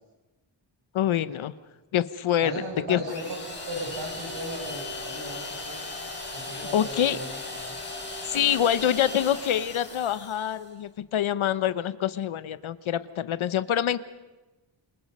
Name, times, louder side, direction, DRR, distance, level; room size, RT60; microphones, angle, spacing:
voice 1, 0.9-1.5 1.9-2.6 2.9-3.2 6.5-7.2 8.3-14.0, left 10 dB, 90° left, 14 dB, 1.0 m, -26 dB
voice 2, 2.4-5.8 6.3-7.8, right 1 dB, 60° right, 1 dB, 7.3 m, -37 dB
sound 1, 3.1-10.7, left 2 dB, 20° left, 7.8 m, -37 dB
28.5 x 27.5 x 5.5 m, 1.1 s
wide cardioid pair, 150°, 47 cm